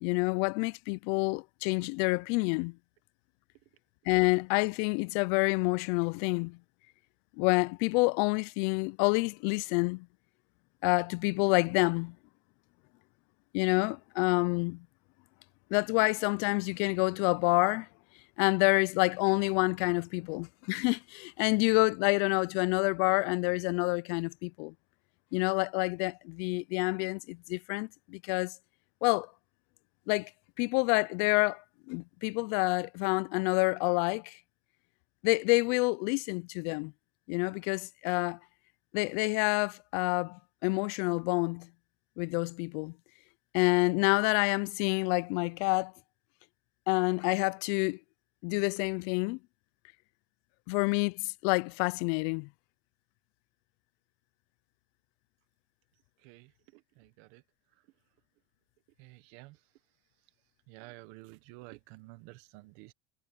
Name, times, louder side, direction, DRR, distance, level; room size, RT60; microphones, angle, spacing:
voice 1, 0.0-2.7 4.1-6.6 7.4-10.1 10.8-12.2 13.5-14.9 15.7-17.9 18.4-24.7 25.3-28.5 29.0-29.3 30.1-30.3 30.6-34.4 35.2-36.9 37.3-38.4 38.9-41.7 42.2-42.9 43.5-45.9 46.9-48.0 48.4-49.4 50.7-52.5, left 29 dB, 60° left, 0.4 m, -28 dB
voice 2, 56.2-57.4 59.0-59.6 60.7-62.9, right 21 dB, 60° right, 1.3 m, -51 dB
supercardioid pair, 150°, 7 cm